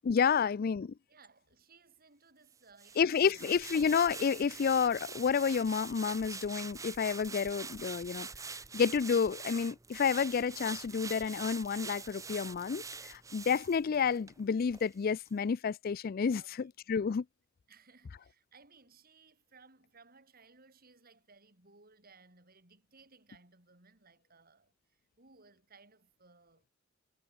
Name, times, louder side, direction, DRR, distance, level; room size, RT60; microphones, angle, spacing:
voice 1, 0.0-0.9 3.0-8.3 8.7-17.2, left 6 dB, 45° left, 0.4 m, -30 dB
voice 2, 1.1-3.5 16.3-16.6 16.9-17.0 17.7-26.7, right 4 dB, 45° right, 5.2 m, -62 dB
sound 1, 2.8-14.4 14.7-14.9, right 5 dB, 15° right, 1.0 m, -45 dB
head